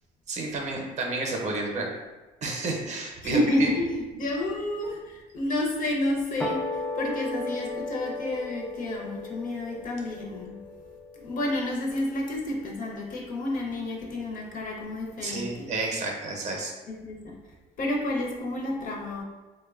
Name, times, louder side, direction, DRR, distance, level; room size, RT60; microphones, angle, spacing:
voice 1, 0.3-1.9 2.4-3.4 15.2-16.7, right 3 dB, 45° right, 0 dB, 0.6 m, -31 dB
voice 2, 3.2-10.6 11.1-15.7 17.0-17.4 17.8-19.2, left 1 dB, 55° left, -1 dB, 0.6 m, -30 dB
sound 1, 6.4-12.9, left 2 dB, 5° left, 0.3 m, -36 dB
2.9 x 2.1 x 2.3 m, 1.2 s
cardioid pair, 110°, 17 cm